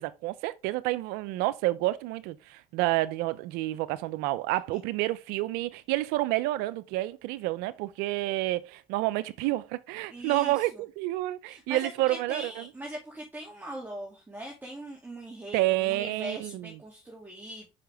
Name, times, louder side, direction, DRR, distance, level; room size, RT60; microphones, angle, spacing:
voice 1, 0.0-12.5 15.5-16.7, right 17 dB, 90° right, 0.6 m, -29 dB
voice 2, 10.1-10.8 11.4-17.7, right 1 dB, 10° right, 2.6 m, -41 dB
6.6 x 5.6 x 3.5 m
supercardioid pair, 75°, 16 cm